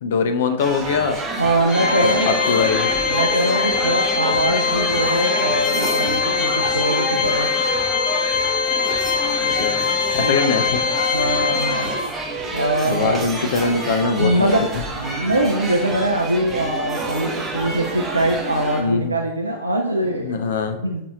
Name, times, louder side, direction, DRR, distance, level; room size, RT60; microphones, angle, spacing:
voice 1, 0.0-1.2 2.0-2.9 9.4-9.8 10.1-10.8 12.8-14.7 18.8-19.1 20.2-20.8, left 5 dB, 60° left, 7 dB, 0.4 m, -22 dB
sound 1, 0.6-18.8, right 2 dB, 15° right, 0.7 m, -29 dB
voice 2, 1.4-2.3 3.1-7.5 10.2-10.5 11.1-11.9 12.4-13.2 14.2-14.7 14.9-20.3 20.8-21.0, right 1 dB, 85° right, 0 dB, 0.3 m, -22 dB
Organ, 1.7-12.3, left 6 dB, 40° left, 0.9 m, -22 dB
5.3 x 2.5 x 2.9 m, 0.85 s
figure-of-eight pair, 90°, 0 cm